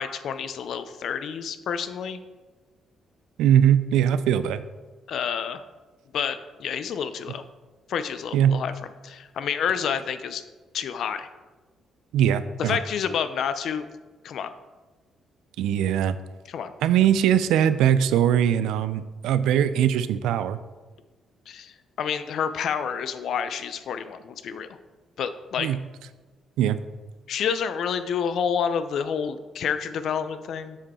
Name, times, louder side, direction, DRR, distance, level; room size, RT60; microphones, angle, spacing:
voice 1, 0.0-2.2 5.1-5.6 6.1-7.4 7.9-8.7 9.0-10.4 10.7-11.3 12.6-13.9 14.2-14.5 16.5-16.7 21.5-24.7 25.2-25.7 27.3-30.8, left 7 dB, 70° left, 11 dB, 0.5 m, -29 dB
voice 2, 3.4-4.6 8.3-8.6 12.1-12.8 15.6-16.2 16.8-20.6 25.6-25.8 26.6-26.8, right 10 dB, 90° right, 13 dB, 0.4 m, -21 dB
7.4 x 5.3 x 4.2 m, 1.3 s
cardioid pair, 90°, 0 cm